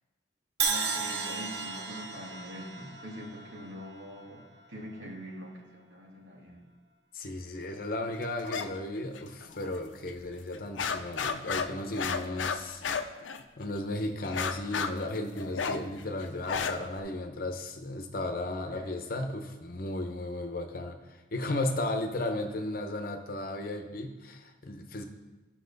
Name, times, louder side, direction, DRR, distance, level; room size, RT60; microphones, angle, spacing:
Crash cymbal, 0.6-4.6, right 5 dB, 60° right, 0.8 m, -34 dB
voice 1, 0.7-6.7 18.7-19.0, equal, 85° right, -2 dB, 1.9 m, -44 dB
voice 2, 7.1-12.8 13.6-25.0, left 1 dB, 50° left, 5 dB, 0.9 m, -35 dB
sound 1, 8.4-8.7 9.0-9.8 10.1-10.2 10.5-13.8 14.2-17.0, left 6 dB, 80° left, 0.5 m, -33 dB
12.0 x 6.1 x 4.0 m, 1.1 s
head